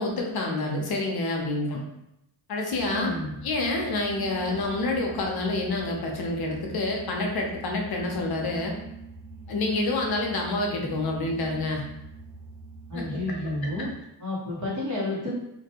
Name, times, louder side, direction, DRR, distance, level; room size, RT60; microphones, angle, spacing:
voice 1, 0.0-1.8 2.5-3.1 3.4-8.7 9.5-11.8 12.9-13.2, left 2 dB, 60° left, 0 dB, 0.6 m, -28 dB
sound 1, 2.7-14.0, right 4 dB, 10° right, 1.1 m, -43 dB
voice 2, 2.9-3.3 12.9-13.9 14.2-15.3, left 1 dB, 45° right, -6 dB, 1.1 m, -30 dB
2.5 x 2.2 x 2.8 m, 0.83 s
cardioid pair, 100°, 43 cm